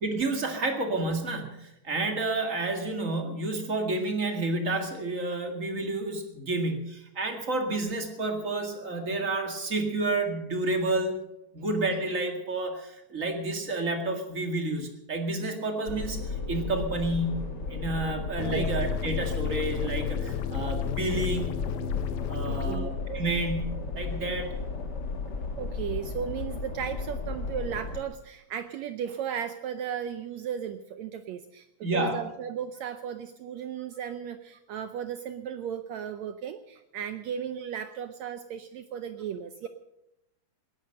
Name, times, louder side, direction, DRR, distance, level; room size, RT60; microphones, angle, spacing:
voice 1, 0.0-11.1 11.5-21.6 22.3-24.5 31.8-32.3, right 2 dB, 30° right, 4 dB, 1.7 m, -30 dB
sound 1, 15.9-28.0, left 4 dB, 40° left, 1.7 m, -34 dB
sound 2, 18.4-22.8, left 8 dB, 75° left, 2.0 m, -32 dB
voice 2, 22.4-22.9 25.6-31.7 31.9-39.7, right 8 dB, 80° right, 9 dB, 1.6 m, -35 dB
19.0 x 11.0 x 6.5 m, 0.85 s
omnidirectional pair, 4.0 m